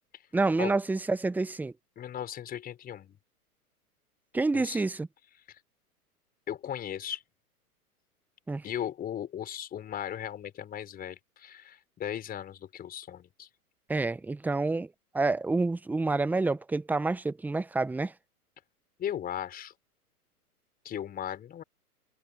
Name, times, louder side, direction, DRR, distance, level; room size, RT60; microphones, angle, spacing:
voice 1, 0.3-1.7 4.3-5.1 8.5-8.6 13.9-14.9 15.1-18.1, right 3 dB, 5° right, 1.1 m, -28 dB
voice 2, 2.0-3.2 4.5-4.8 6.5-7.2 8.6-13.5 19.0-19.7 20.8-21.6, left 10 dB, 20° left, 5.3 m, -37 dB
hypercardioid pair, 120°, 46 cm